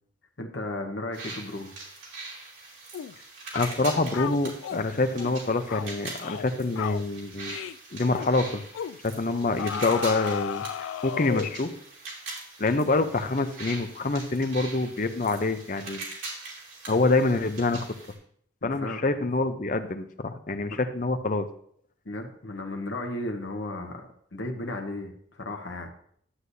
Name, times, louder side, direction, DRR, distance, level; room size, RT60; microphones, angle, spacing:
voice 1, 0.4-1.7 18.6-19.0 20.7-20.8 22.0-25.9, left 1 dB, 70° left, 2 dB, 1.1 m, -35 dB
sound 1, 1.1-18.1, right 3 dB, 80° right, 3.0 m, -42 dB
sound 2, 2.9-3.2 3.5-3.8 4.1-4.9 5.2-5.4 5.7-5.9 6.2-6.5 6.8-7.0 7.5-7.8 8.1-8.3 8.7-9.0 9.6-11.6, left 8 dB, 90° left, 0.3 m, -34 dB
voice 2, 3.5-7.6 7.9-8.6 9.0-11.7 12.6-16.0 16.9-17.9 18.6-21.5, left 3 dB, 40° left, 9 dB, 0.6 m, -26 dB
11.5 x 8.1 x 2.7 m, 0.64 s
head